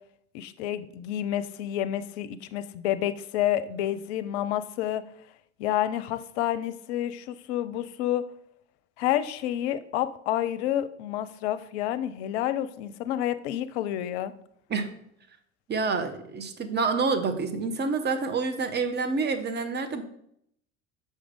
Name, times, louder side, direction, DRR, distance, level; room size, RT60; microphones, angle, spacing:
voice 1, 0.3-5.0 5.6-8.2 9.0-14.3, left 12 dB, 65° left, 13 dB, 0.6 m, -29 dB
voice 2, 15.7-20.0, right 4 dB, 30° right, 8 dB, 0.9 m, -28 dB
6.5 x 4.9 x 3.5 m, 0.72 s
hypercardioid pair, 70°, 36 cm